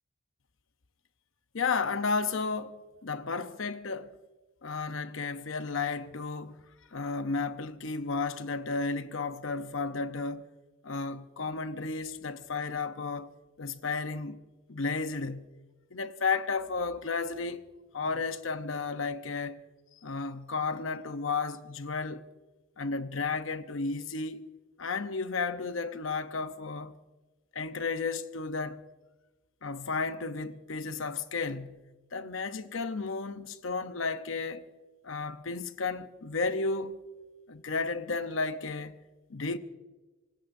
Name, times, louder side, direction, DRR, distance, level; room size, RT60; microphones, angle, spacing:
voice 1, 1.5-4.1 4.6-10.5 10.8-13.3 13.6-14.4 14.7-15.5 15.9-17.7 17.9-19.6 20.0-22.2 22.8-24.5 24.8-26.9 27.5-28.8 29.6-31.8 32.1-34.6 35.0-37.0 37.5-39.0 39.3-39.6, left 4 dB, 75° left, 0.9 m, -33 dB
25.5 x 18.5 x 2.7 m
head